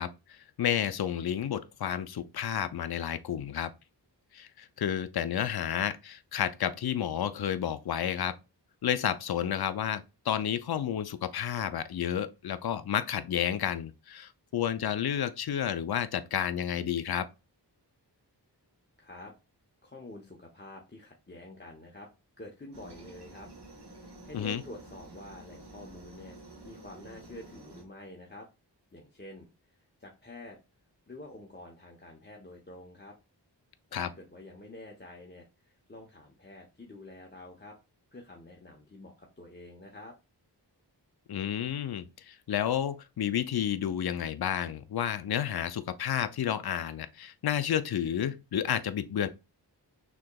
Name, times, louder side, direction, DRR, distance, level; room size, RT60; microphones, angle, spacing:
voice 1, 0.0-3.7 4.3-8.3 8.8-17.3 24.3-24.6 33.9-34.1 41.3-49.3, left 9 dB, 60° left, 0.5 m, -31 dB
voice 2, 19.0-19.3 19.8-22.1 22.4-23.5 23.9-26.4 26.6-28.5 28.9-30.6 31.1-33.1 33.9-37.8 38.1-40.1, left 1 dB, 25° left, 0.8 m, -48 dB
Aircraft, 22.7-27.8, right 2 dB, 65° right, 1.2 m, -50 dB
6.1 x 3.0 x 2.2 m
wide cardioid pair, 65°, 43 cm